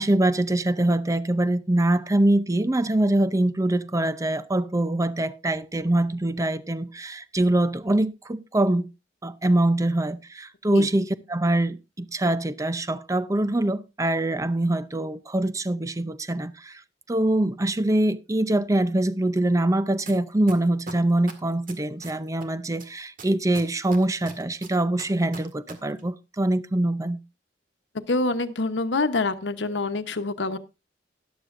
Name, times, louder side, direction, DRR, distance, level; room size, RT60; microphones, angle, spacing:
voice 1, 0.0-8.9 9.2-16.8 17.1-27.2, right 1 dB, 20° right, 0.6 m, -24 dB
sound 1, 20.1-20.2 20.5-22.4 22.8-25.7 26.0-26.1, right 4 dB, 50° right, 1.9 m, -40 dB
voice 2, 28.1-30.6, left 3 dB, 85° left, 1.0 m, -26 dB
13.0 x 11.5 x 2.6 m
head